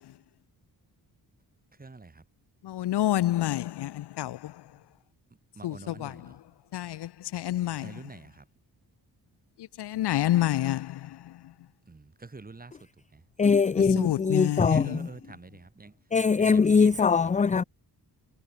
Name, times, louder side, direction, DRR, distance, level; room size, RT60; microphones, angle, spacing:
voice 1, 1.8-2.2 5.5-6.4 7.8-8.4 11.9-12.8 13.1-13.2 14.7-16.0 16.4-17.1, right 3 dB, 20° right, 5.9 m, -46 dB
voice 2, 2.7-4.4 5.6-5.7 6.0-6.1 6.7-7.9 9.8-10.9 14.0-14.9, left 13 dB, 75° left, 0.8 m, -27 dB
voice 3, 13.4-15.1 16.1-17.6, left 5 dB, 20° left, 0.5 m, -22 dB
wide cardioid pair, 145°, 41 cm